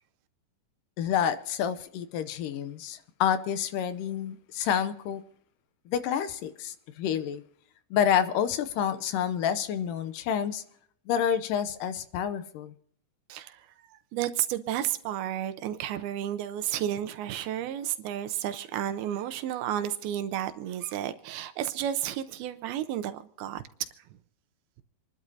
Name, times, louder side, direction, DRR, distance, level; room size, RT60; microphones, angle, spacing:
voice 1, 1.0-5.2 5.9-7.4 7.9-10.6 11.1-12.7, left 9 dB, 80° left, 2.0 m, -28 dB
voice 2, 13.3-13.7 14.1-23.6, right 11 dB, 80° right, 2.5 m, -32 dB
27.5 x 12.0 x 2.7 m
omnidirectional pair, 4.5 m